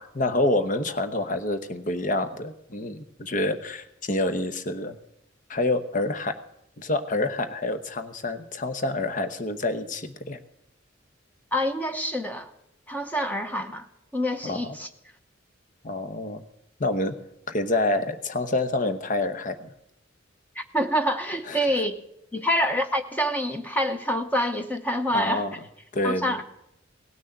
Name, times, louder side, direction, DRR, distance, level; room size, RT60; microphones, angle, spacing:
voice 1, 0.0-4.9 5.5-6.4 6.8-10.4 14.4-14.6 15.8-16.4 16.8-17.1 17.5-19.7 21.5-21.7 25.1-25.5 25.9-26.4, left 2 dB, 40° left, 9 dB, 0.9 m, -27 dB
voice 2, 11.5-12.5 12.9-13.9 14.1-14.9 20.5-21.9 22.3-25.4 26.0-26.4, equal, 10° left, 6 dB, 0.9 m, -26 dB
18.0 x 6.3 x 9.0 m, 0.79 s
head